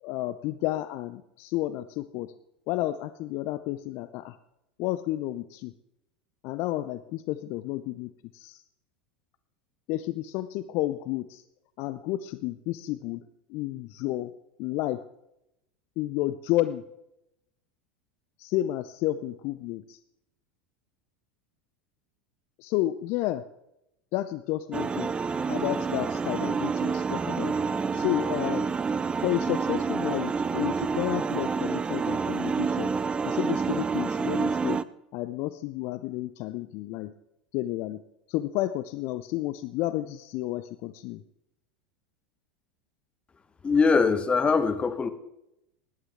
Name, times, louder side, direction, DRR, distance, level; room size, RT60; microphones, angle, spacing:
voice 1, 0.0-2.3 2.7-4.4 4.8-5.7 6.4-8.6 9.9-11.4 11.8-13.2 13.5-14.3 14.6-15.0 16.0-16.8 18.4-20.0 22.6-23.4 24.1-25.1 25.5-27.5 27.9-28.7 29.2-32.9 33.2-34.8 35.1-37.1 37.5-38.0 38.3-41.2, left 15 dB, 50° left, 13 dB, 0.5 m, -31 dB
sound 1, 24.7-34.8, right 5 dB, 15° right, 0.5 m, -28 dB
voice 2, 43.6-45.1, left 5 dB, 20° left, 11 dB, 1.1 m, -22 dB
18.0 x 11.0 x 3.5 m, 0.84 s
figure-of-eight pair, 80°, 5 cm